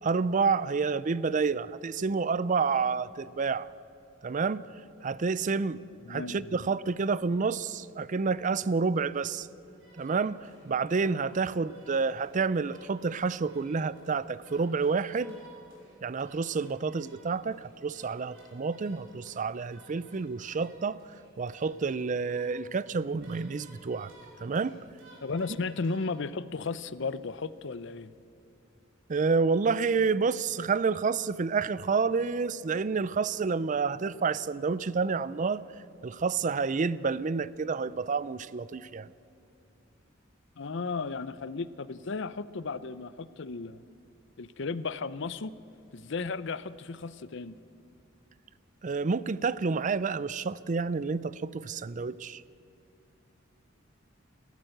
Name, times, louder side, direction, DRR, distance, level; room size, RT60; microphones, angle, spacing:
voice 1, 0.0-3.7 4.2-4.6 5.0-5.8 6.1-9.5 10.0-15.4 16.0-21.0 21.4-24.1 24.4-24.7 29.1-35.6 36.0-39.1 48.8-52.4, right 4 dB, 40° right, 18 dB, 0.4 m, -29 dB
voice 2, 6.1-6.6 25.2-28.1 40.6-43.8 44.4-45.5 45.9-47.6, left 4 dB, 65° left, 16 dB, 0.6 m, -35 dB
sound 1, 9.7-26.2, right 2 dB, 70° right, 5.8 m, -58 dB
29.0 x 13.0 x 7.9 m, 2.7 s
head